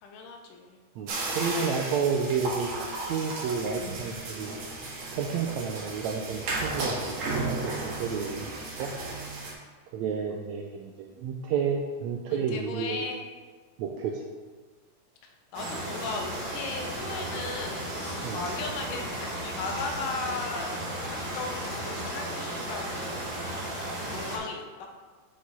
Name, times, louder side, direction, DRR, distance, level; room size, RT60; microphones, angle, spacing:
voice 1, 0.0-0.8 12.3-13.2 15.2-23.3 24.1-24.6, left 3 dB, 85° left, 3 dB, 2.4 m, -37 dB
voice 2, 1.0-4.5 5.1-8.9 9.9-13.1 13.8-14.2 18.2-18.4, right 6 dB, 80° right, 2 dB, 1.6 m, -31 dB
sound 1, 1.1-9.5, right 2 dB, 65° right, 2.6 m, -34 dB
sound 2, 15.5-24.4, right 1 dB, 45° right, 1.4 m, -35 dB
8.1 x 4.8 x 4.2 m, 1.4 s
omnidirectional pair, 3.7 m